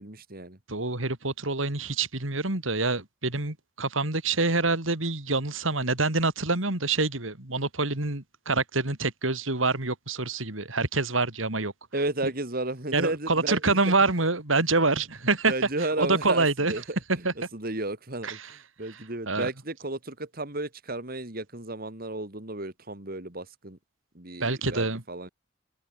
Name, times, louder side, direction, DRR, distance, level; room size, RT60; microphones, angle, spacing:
voice 1, 0.0-0.6 11.9-13.6 13.8-13.9 15.5-17.0 17.5-18.4 18.8-23.8 24.1-25.3, right 2 dB, 50° right, 3.1 m, -33 dB
voice 2, 0.7-11.7 12.9-15.5 15.8-16.8 17.1-17.3 18.2-18.6 18.9-19.5 24.4-25.0, right 3 dB, 85° right, 3.8 m, -26 dB
open air
head